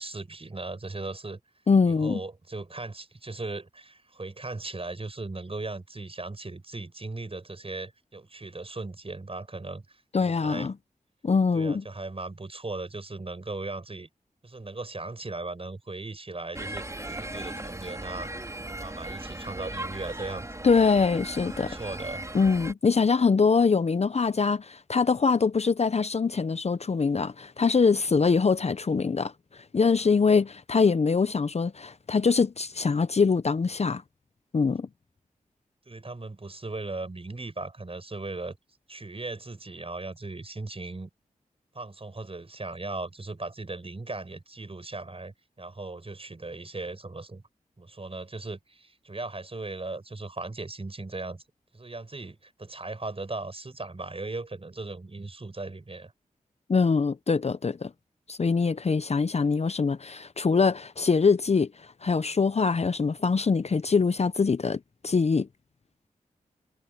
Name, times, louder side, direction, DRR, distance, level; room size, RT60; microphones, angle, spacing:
voice 1, 0.0-1.4 1.8-10.7 11.5-14.1 14.4-20.5 21.4-22.3 35.9-38.6 38.9-41.1 41.7-47.4 47.8-51.4 51.7-56.1, right 3 dB, 40° right, 7.8 m, -38 dB
voice 2, 1.7-2.2 10.1-10.7 11.2-11.8 20.6-21.8 22.3-34.0 34.5-34.9 56.7-57.9 58.3-65.5, left 5 dB, 45° left, 0.7 m, -23 dB
sound 1, 16.5-22.7, right 1 dB, 20° right, 3.8 m, -37 dB
cardioid pair, 45°, 15 cm